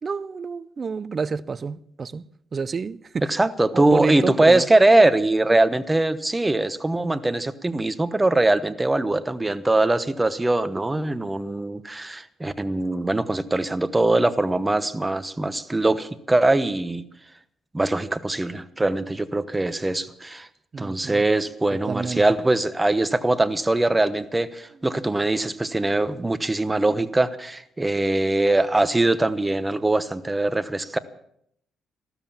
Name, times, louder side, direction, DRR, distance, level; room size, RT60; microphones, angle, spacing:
voice 1, 0.0-3.3 3.7-4.7 20.7-21.2 21.7-22.2, right 5 dB, 40° right, 0.5 m, -29 dB
voice 2, 3.2-17.0 17.7-20.5 20.8-31.0, right 2 dB, 15° right, 1.0 m, -22 dB
15.0 x 13.0 x 7.2 m
cardioid pair, 90°, 0 cm